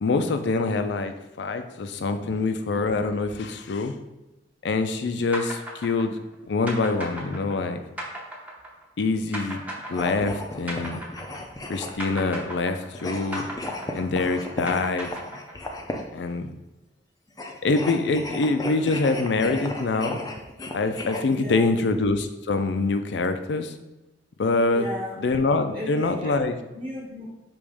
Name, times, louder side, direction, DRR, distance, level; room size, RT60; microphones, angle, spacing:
voice 1, 0.0-3.9 4.6-6.2 6.5-7.8 9.0-9.6 9.9-11.0 11.7-13.5 13.9-15.1 16.1-16.5 17.6-20.2 20.7-23.7 24.4-24.9 25.2-26.5, left 3 dB, 75° left, 8 dB, 0.4 m, -25 dB
sound 1, 5.3-11.7 12.0-15.8, right 1 dB, 10° right, 0.8 m, -36 dB
sound 2, 9.9-12.2 12.9-16.2 17.3-21.2, left 1 dB, 20° left, 0.4 m, -35 dB
voice 2, 21.3-21.8 24.7-25.2 25.7-26.4 26.7-27.3, left 1 dB, 30° right, -6 dB, 1.1 m, -35 dB
5.0 x 3.0 x 3.4 m, 1.0 s
head